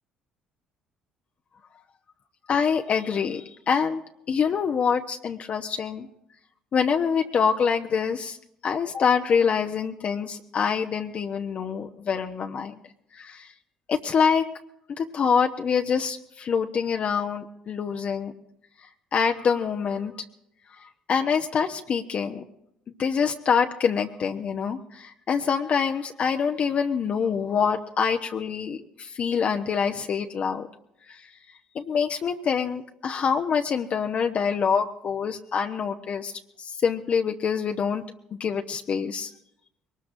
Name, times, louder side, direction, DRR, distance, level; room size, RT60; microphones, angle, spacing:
voice 1, 2.5-4.0 4.3-6.1 6.7-8.4 8.6-12.8 13.1-13.5 13.9-14.4 15.0-18.3 18.8-20.1 20.8-22.4 23.0-30.7 31.1-31.3 31.7-36.3 36.6-38.0 38.3-39.3, left 6 dB, 50° left, 4 dB, 0.9 m, -25 dB
22.0 x 19.5 x 2.6 m, 0.77 s
hypercardioid pair, 60°, 3 cm